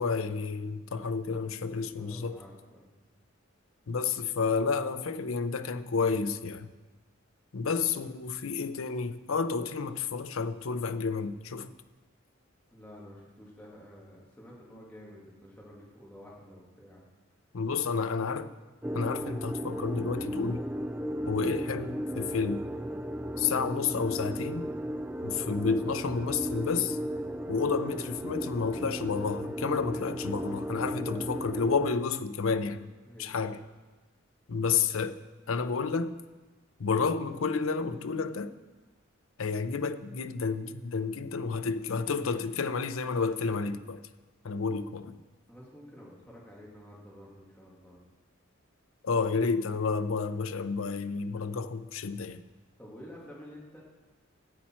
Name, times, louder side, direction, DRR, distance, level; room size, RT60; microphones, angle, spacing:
voice 1, 0.0-2.4 3.9-6.7 7.5-11.7 17.5-18.5 18.9-20.6 21.3-22.6 23.4-24.7 25.2-27.0 27.5-32.9 33.2-33.6 34.5-35.2 35.5-36.2 36.8-38.5 39.4-44.0 44.4-45.2 49.0-52.4, left 5 dB, 85° left, 0.6 m, -30 dB
voice 2, 1.9-2.9 12.7-17.0 17.9-18.1 33.0-33.3 45.5-48.0 51.4-51.5 52.8-53.8, equal, 10° left, 2.1 m, -50 dB
sound 1, 18.8-31.9, equal, 10° right, 0.5 m, -35 dB
14.0 x 8.5 x 4.4 m
head